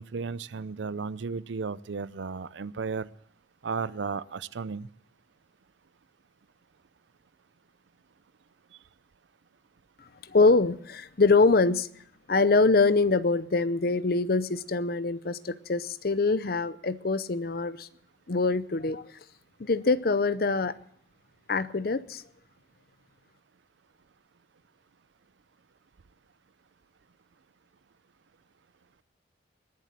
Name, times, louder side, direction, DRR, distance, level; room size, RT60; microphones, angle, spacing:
voice 1, 0.0-3.1 3.6-4.9, right 5 dB, 75° right, 19 dB, 0.5 m, -34 dB
voice 2, 10.3-11.9 12.3-17.9 18.3-19.0 19.6-20.7 21.5-22.2, left 3 dB, 50° left, 16 dB, 0.6 m, -24 dB
21.0 x 7.6 x 7.4 m, 0.66 s
head